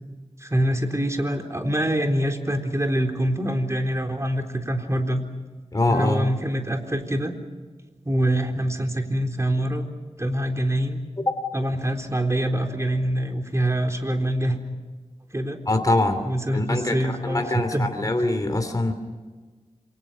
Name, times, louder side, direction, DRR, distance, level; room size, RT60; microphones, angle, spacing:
voice 1, 0.4-5.2 5.9-7.3 8.1-9.9 10.2-11.0 11.5-14.6 15.3-15.6 16.2-17.9, right 1 dB, 25° right, 4 dB, 3.9 m, -25 dB
voice 2, 5.7-6.3 15.7-16.2 16.5-18.9, left 2 dB, 30° left, 6 dB, 2.9 m, -23 dB
28.5 x 25.5 x 6.2 m, 1.4 s
wide cardioid pair, 70°, 12 cm